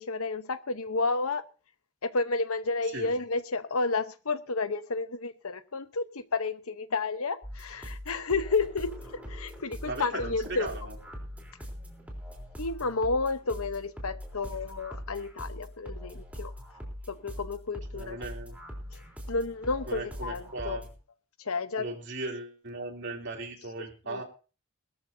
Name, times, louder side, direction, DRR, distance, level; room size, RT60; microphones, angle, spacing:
voice 1, 0.0-1.5 2.0-8.9 9.3-10.7 12.6-16.5 17.1-18.2 18.9-19.0 19.3-20.8 21.4-21.9 24.1-24.2, left 3 dB, 90° left, 1.0 m, -31 dB
sound 1, 7.4-20.9, equal, 5° right, 3.8 m, -42 dB
voice 2, 9.8-10.9 17.9-18.6 19.9-20.9 21.8-24.2, right 2 dB, 55° right, 3.2 m, -37 dB
21.0 x 13.5 x 2.8 m
head